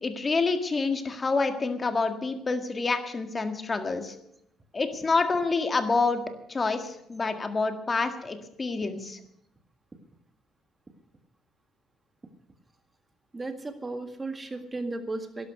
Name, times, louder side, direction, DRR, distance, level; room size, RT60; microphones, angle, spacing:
voice 1, 0.0-4.2 4.7-9.2, left 4 dB, 25° left, 7 dB, 1.7 m, -27 dB
voice 2, 13.3-15.5, right 2 dB, 20° right, 7 dB, 1.9 m, -35 dB
12.5 x 11.0 x 8.1 m, 0.78 s
cardioid pair, 125°, 0 cm